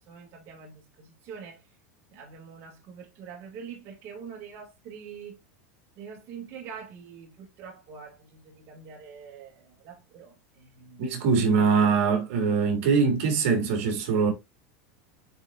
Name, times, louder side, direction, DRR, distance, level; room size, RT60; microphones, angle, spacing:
voice 1, 0.1-1.6 2.1-5.4 6.0-11.5, right 6 dB, 40° right, 2.4 m, -45 dB
voice 2, 11.0-14.3, right 5 dB, 60° right, 2.7 m, -23 dB
9.2 x 4.1 x 2.6 m
supercardioid pair, 150°, 8 cm